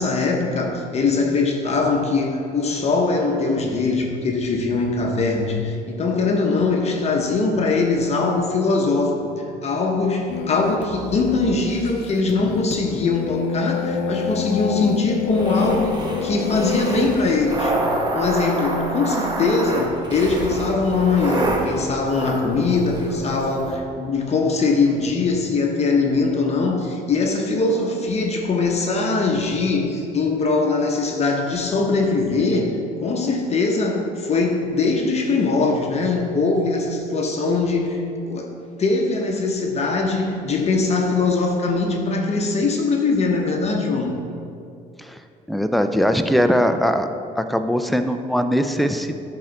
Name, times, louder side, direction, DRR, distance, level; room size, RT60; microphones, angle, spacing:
voice 1, 0.0-17.8 18.1-38.5 38.8-44.2, left 3 dB, 40° left, 1 dB, 0.9 m, -21 dB
sound 1, 10.3-17.3, left 7 dB, 75° left, 0.5 m, -29 dB
sound 2, 15.3-23.8, right 1 dB, 25° right, 1.2 m, -27 dB
voice 2, 45.5-47.1 47.4-49.2, equal, ahead, 7 dB, 0.4 m, -20 dB
11.0 x 3.8 x 4.5 m, 2.5 s
cardioid pair, 110°, 17 cm